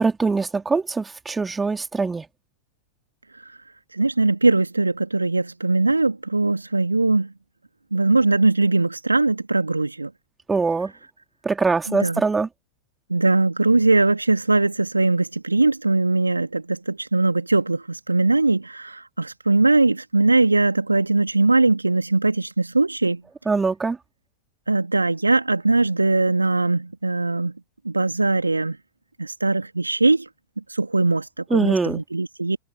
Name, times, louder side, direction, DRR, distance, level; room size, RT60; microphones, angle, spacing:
voice 1, 0.0-2.2 10.5-10.9 11.4-12.5 23.5-24.0 31.5-32.0, right 4 dB, 10° right, 3.3 m, -22 dB
voice 2, 3.9-7.3 7.9-10.1 11.9-12.2 13.1-23.2 24.7-27.5 27.9-28.8 29.2-30.2 30.7-32.6, right 3 dB, 80° right, 2.5 m, -20 dB
figure-of-eight pair, 90°, 0 cm